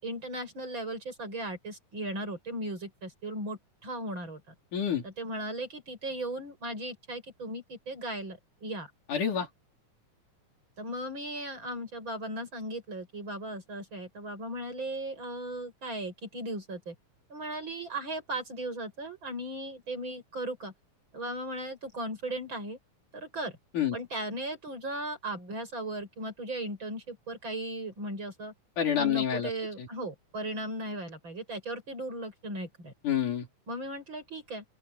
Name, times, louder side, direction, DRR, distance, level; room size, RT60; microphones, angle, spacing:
voice 1, 0.0-4.4 5.0-8.9 10.8-16.9 17.3-20.7 21.1-22.8 23.1-23.6 23.9-28.5 29.0-32.9 33.7-34.6, right 1 dB, 35° right, 7.5 m, -37 dB
voice 2, 4.7-5.1 9.1-9.5 23.7-24.0 28.8-29.5 29.8-29.9 33.0-33.5, left 8 dB, 80° left, 5.2 m, -28 dB
open air
omnidirectional pair, 3.6 m